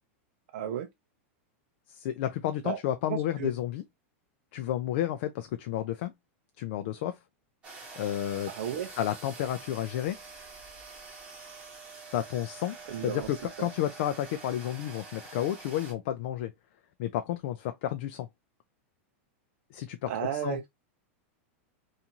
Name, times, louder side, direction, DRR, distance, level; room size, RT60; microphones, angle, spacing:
voice 1, 0.5-0.9 2.6-2.8 3.1-3.5 8.5-8.9 12.9-13.3 13.6-13.7 20.1-20.7, right 9 dB, 70° right, 0.5 m, -33 dB
voice 2, 1.9-3.8 4.5-6.1 6.6-7.2 8.0-8.5 9.0-10.2 12.1-12.8 13.0-16.5 17.0-18.3 19.7-20.1 20.4-20.6, left 11 dB, 50° left, 0.3 m, -31 dB
sound 1, 7.6-15.9, right 4 dB, 15° right, 0.9 m, -46 dB
2.6 x 2.4 x 2.7 m
supercardioid pair, 165°, 7 cm